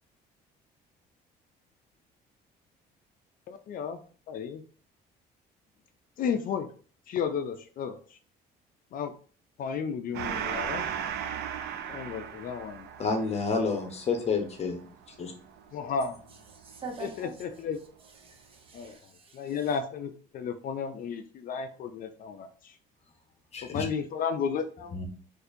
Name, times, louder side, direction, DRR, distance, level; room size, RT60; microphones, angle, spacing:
voice 1, 3.5-4.0 4.3-4.6 6.2-6.7 7.1-7.9 8.9-9.1 9.6-10.9 11.9-12.9 15.7-16.2 17.0-17.8 18.7-19.0 19.3-22.7 23.7-25.0, left 6 dB, 55° left, 0.4 m, -33 dB
Gong, 10.1-17.1, right 8 dB, 75° right, 0.5 m, -37 dB
voice 2, 13.0-14.8 15.2-15.3 23.5-23.9 24.9-25.1, left 4 dB, 40° left, 0.8 m, -29 dB
voice 3, 16.6-17.3 18.2-19.7, right 4 dB, 35° right, 0.9 m, -44 dB
4.2 x 2.6 x 2.6 m
cardioid pair, 110°, 17 cm